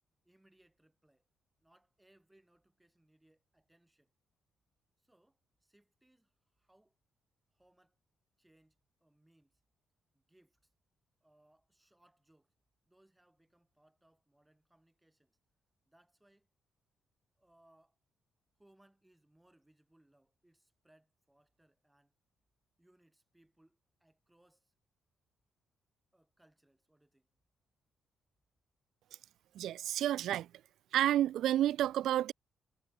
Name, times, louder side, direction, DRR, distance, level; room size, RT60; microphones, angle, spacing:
voice 1, 0.2-1.2 1.6-4.1 5.0-7.0 7.5-8.0 8.4-9.6 10.1-10.6 11.2-12.5 12.9-15.4 15.9-16.5 17.4-18.0 18.6-22.1 22.8-24.7 26.1-27.3, right 1 dB, 5° right, 3.7 m, -69 dB
voice 2, 29.5-30.5 30.9-32.3, right 12 dB, 80° right, 0.3 m, -30 dB
cardioid pair, 135°, 0 cm